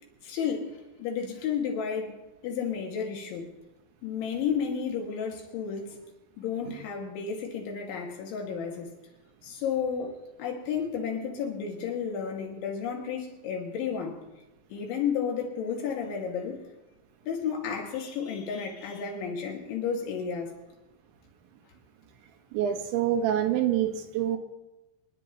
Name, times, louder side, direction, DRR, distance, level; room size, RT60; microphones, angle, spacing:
voice 1, 0.2-3.5 4.0-6.0 6.4-8.9 9.4-14.2 14.7-16.6 17.3-20.5, left 7 dB, 85° left, 4.6 m, -32 dB
voice 2, 22.5-24.4, right 10 dB, 80° right, 3.6 m, -26 dB
27.0 x 10.5 x 3.1 m
omnidirectional pair, 5.3 m